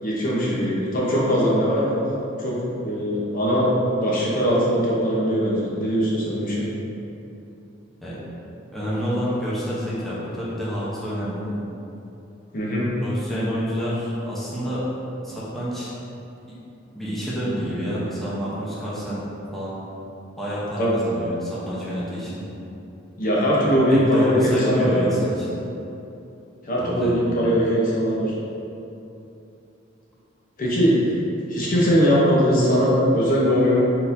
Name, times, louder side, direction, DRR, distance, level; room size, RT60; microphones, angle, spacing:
voice 1, 0.0-2.0 2.4-6.7 12.5-12.9 20.8-21.0 23.2-25.2 26.6-28.3 30.6-31.2 31.5-33.8, equal, 45° left, -6 dB, 0.8 m, -20 dB
voice 2, 8.7-11.6 13.0-14.8 15.2-15.9 16.9-19.2 19.5-19.7 20.4-22.4 23.9-25.5 26.8-27.3, equal, ahead, -10 dB, 0.8 m, -28 dB
4.2 x 4.1 x 2.6 m, 2.8 s
head